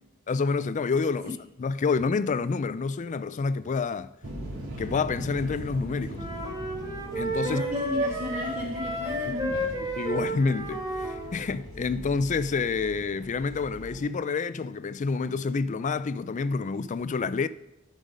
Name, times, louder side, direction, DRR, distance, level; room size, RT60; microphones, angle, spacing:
voice 1, 0.3-4.1 4.8-6.3 7.2-7.6 10.0-17.5, left 4 dB, 35° left, 0.4 m, -28 dB
sound 1, 4.2-14.0, right 1 dB, 75° right, 2.3 m, -41 dB
sound 2, 6.1-11.3, right 1 dB, 20° right, 1.5 m, -31 dB
voice 2, 7.4-10.0, left 2 dB, 35° right, 1.1 m, -34 dB
12.5 x 5.3 x 5.2 m
head